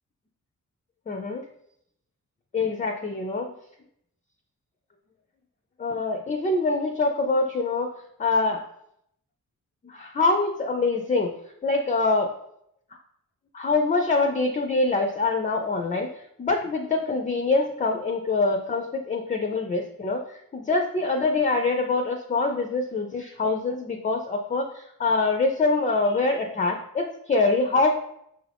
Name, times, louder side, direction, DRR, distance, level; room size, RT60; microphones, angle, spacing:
voice 1, 1.1-1.4 2.5-3.5 5.8-7.9 8.2-8.6 9.8-11.3 11.6-12.3 13.5-16.1 16.4-27.9, left 3 dB, 25° left, 3 dB, 0.3 m, -24 dB
5.6 x 2.4 x 3.3 m, 0.74 s
wide cardioid pair, 130°, 33 cm